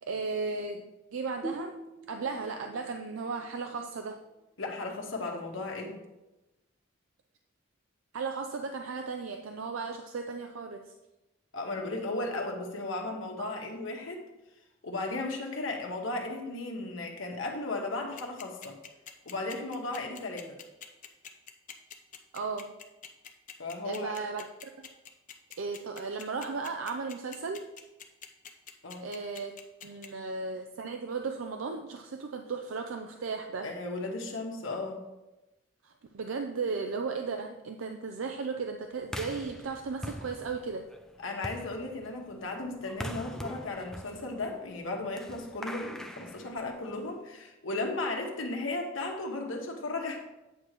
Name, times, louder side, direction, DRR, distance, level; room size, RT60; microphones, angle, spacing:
voice 1, 0.0-1.7 2.1-4.2 8.1-10.9 13.4-13.6 22.3-22.7 23.8-24.5 24.8-24.9 25.6-27.7 29.0-29.5 29.8-33.7 35.8-40.9, right 4 dB, 85° right, 5 dB, 0.5 m, -35 dB
sound 1, 1.4-4.8, right 1 dB, 20° right, 0.9 m, -45 dB
voice 2, 4.6-6.0 11.5-14.2 14.8-18.8 19.2-20.6 23.6-24.1 28.8-29.1 33.6-35.0 41.2-50.2, left 2 dB, 75° left, 1 dB, 1.2 m, -35 dB
sound 2, 18.2-30.1, left 8 dB, 40° left, 0.6 m, -45 dB
sound 3, 39.0-47.2, equal, 5° left, 0.4 m, -43 dB
8.7 x 3.1 x 6.5 m, 1.0 s
head